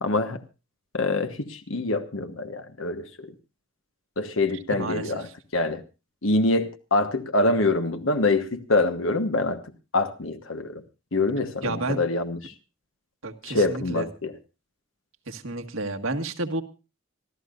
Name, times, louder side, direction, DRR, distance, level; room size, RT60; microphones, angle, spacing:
voice 1, 0.0-0.4 0.9-3.3 4.2-5.3 5.5-5.8 6.2-9.6 9.9-10.8 11.1-12.5 13.4-14.3, left 2 dB, 75° left, 8 dB, 1.3 m, -25 dB
voice 2, 4.7-5.1 11.6-12.0 13.2-14.1 15.3-16.6, right 2 dB, 80° right, 5 dB, 1.7 m, -30 dB
26.5 x 13.5 x 2.5 m, 0.30 s
head